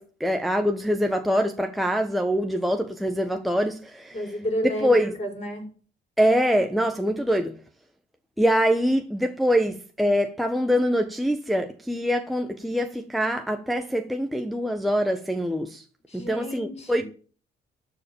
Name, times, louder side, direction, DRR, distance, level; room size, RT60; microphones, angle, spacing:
voice 1, 0.0-4.2 4.8-5.1 6.2-7.6 8.4-15.8 16.1-17.0, equal, ahead, 0.9 m, -24 dB
voice 2, 4.1-5.7 16.1-17.0, equal, 35° left, 6.8 m, -31 dB
13.0 x 5.0 x 8.9 m
cardioid pair, 90°, 20 cm